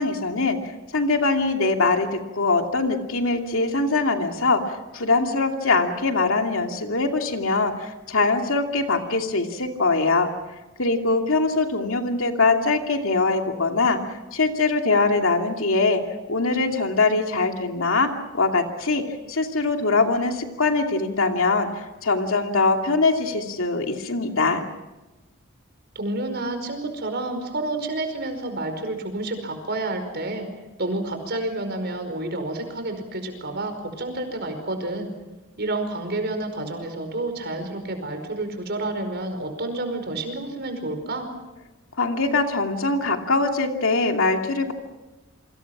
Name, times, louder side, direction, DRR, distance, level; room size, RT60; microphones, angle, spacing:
voice 1, 0.0-10.3 10.8-14.0 14.3-16.0 16.3-19.0 19.3-24.6 42.0-44.7, left 3 dB, 70° left, 3 dB, 2.7 m, -22 dB
voice 2, 25.9-30.5 30.8-35.1 35.6-41.3, right 2 dB, 50° right, 7 dB, 5.1 m, -29 dB
28.0 x 25.0 x 6.1 m, 1.1 s
head